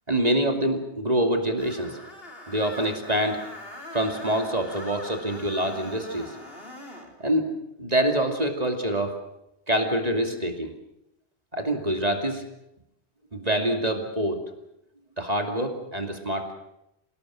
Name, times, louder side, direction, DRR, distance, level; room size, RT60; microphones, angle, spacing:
voice 1, 0.1-2.0 2.5-3.4 3.9-6.4 7.2-7.5 7.8-9.2 9.7-10.7 11.5-12.5 13.3-14.4 15.2-16.5, right 1 dB, 35° right, 4 dB, 2.7 m, -25 dB
Screech, 1.6-7.1, left 1 dB, 60° left, 3.9 m, -42 dB
27.0 x 19.5 x 7.5 m, 0.84 s
omnidirectional pair, 1.1 m